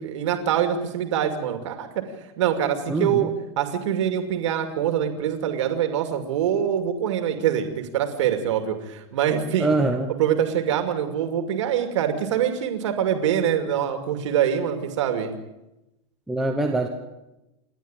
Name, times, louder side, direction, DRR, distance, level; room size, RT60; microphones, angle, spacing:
voice 1, 0.0-2.0 2.4-3.3 3.6-9.7 10.2-15.3, right 9 dB, 90° right, 6 dB, 2.5 m, -24 dB
voice 2, 2.9-3.3 9.6-10.1 16.3-16.9, right 2 dB, 5° right, 1 dB, 1.0 m, -23 dB
28.5 x 10.5 x 9.0 m, 0.94 s
supercardioid pair, 180°, 15 cm